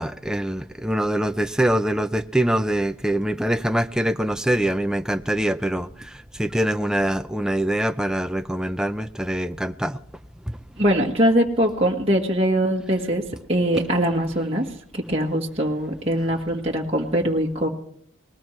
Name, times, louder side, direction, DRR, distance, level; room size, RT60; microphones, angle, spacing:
voice 1, 0.0-10.0 10.5-10.6, right 1 dB, 5° right, 0.5 m, -24 dB
voice 2, 10.8-14.7 14.9-17.7, equal, 30° right, 1.5 m, -22 dB
20.0 x 19.0 x 3.2 m
head